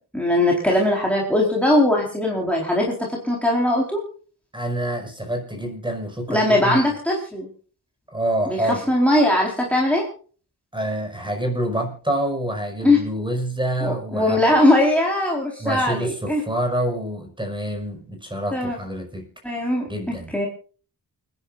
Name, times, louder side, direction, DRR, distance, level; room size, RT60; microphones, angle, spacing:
voice 1, 0.1-4.0 6.3-7.5 8.5-10.1 12.8-13.0 13.8-16.4 18.5-18.8 19.4-19.8 20.3-20.5, left 1 dB, 5° left, -2 dB, 4.1 m, -20 dB
voice 2, 4.5-6.9 8.1-8.8 10.7-14.4 15.6-19.3 19.9-20.4, right 1 dB, 10° right, 4 dB, 5.3 m, -27 dB
29.0 x 10.5 x 2.5 m, 0.40 s
wide cardioid pair, 120°, 40 cm